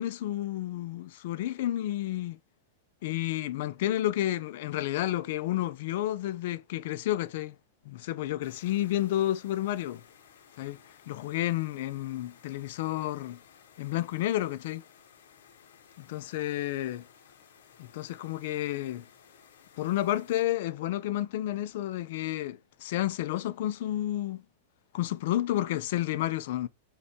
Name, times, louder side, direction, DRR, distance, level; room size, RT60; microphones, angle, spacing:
voice 1, 0.0-2.4 3.0-7.6 7.9-10.0 10.6-10.8 11.1-13.4 13.8-14.8 16.0-17.0 17.8-19.0 19.8-24.4 24.9-26.7, left 14 dB, 45° left, 0.3 m, -31 dB
sound 1, 8.4-20.4, left 7 dB, 70° left, 0.8 m, -57 dB
5.5 x 2.2 x 4.1 m
supercardioid pair, 175°, 0 cm